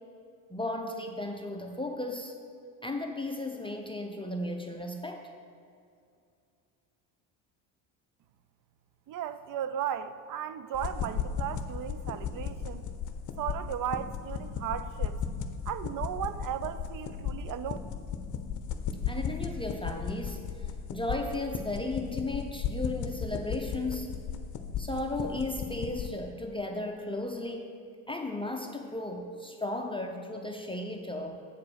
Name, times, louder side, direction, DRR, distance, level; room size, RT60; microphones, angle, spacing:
voice 1, 0.5-2.3 2.8-5.3 19.1-20.4 20.9-24.2 24.8-27.7 28.1-31.4, left 2 dB, 10° left, 2 dB, 0.7 m, -35 dB
voice 2, 9.1-12.8 13.4-15.2 15.7-17.8, right 10 dB, 45° right, 13 dB, 0.5 m, -35 dB
sound 1, 10.7-26.1, left 7 dB, 40° left, 0.8 m, -36 dB
8.2 x 4.7 x 6.4 m, 2.4 s
hypercardioid pair, 75°, 48 cm